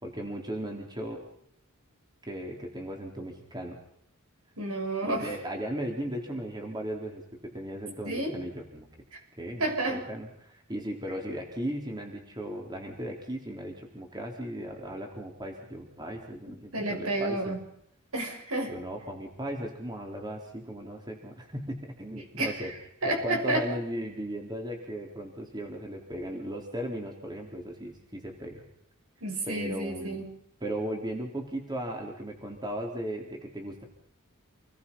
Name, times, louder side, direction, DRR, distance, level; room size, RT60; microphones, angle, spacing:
voice 1, 0.0-1.2 2.2-3.8 5.0-8.9 9.4-17.5 18.7-22.7 23.0-28.6 29.5-30.3 30.6-33.8, right 1 dB, 20° right, 2 dB, 4.0 m, -37 dB
voice 2, 4.6-5.3 8.0-8.4 9.6-10.0 16.5-17.6 18.1-18.7 22.4-22.7 23.0-23.6 29.2-30.3, right 2 dB, 80° right, 2 dB, 7.3 m, -30 dB
28.5 x 21.0 x 5.6 m, 0.71 s
head